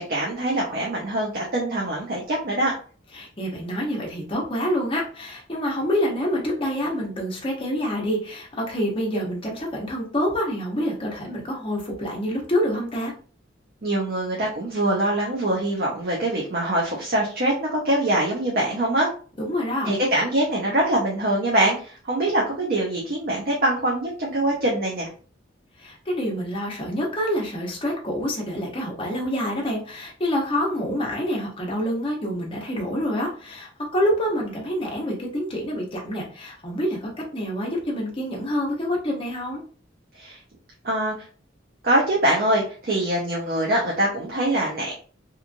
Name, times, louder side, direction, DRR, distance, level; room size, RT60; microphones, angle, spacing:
voice 1, 0.0-2.7 13.8-19.1 19.8-25.1 40.1-40.4 40.8-41.3 41.8-44.9, right 1 dB, 55° right, -3 dB, 0.7 m, -23 dB
voice 2, 3.1-13.1 19.4-19.9 25.8-39.6, equal, 30° left, -2 dB, 0.9 m, -27 dB
2.9 x 2.4 x 2.5 m, 0.40 s
head